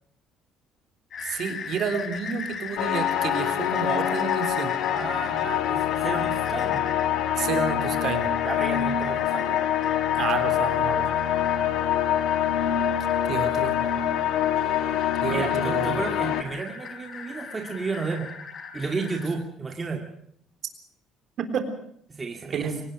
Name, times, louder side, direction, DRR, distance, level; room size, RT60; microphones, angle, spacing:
sound 1, 1.1-19.3, left 6 dB, 40° left, 4.2 m, -38 dB
voice 1, 1.2-4.7 7.4-8.3 10.2-11.3 13.3-13.8 15.2-16.0 21.4-21.7 22.5-22.8, right 6 dB, 50° right, 7 dB, 3.6 m, -30 dB
sound 2, 2.8-16.4, left 10 dB, 75° left, 2.1 m, -25 dB
voice 2, 4.9-6.8 8.4-9.7 15.3-18.3 18.7-20.1 22.1-22.7, right 4 dB, 20° right, 2 dB, 2.4 m, -32 dB
24.0 x 18.5 x 6.2 m, 0.66 s
cardioid pair, 145°, 0 cm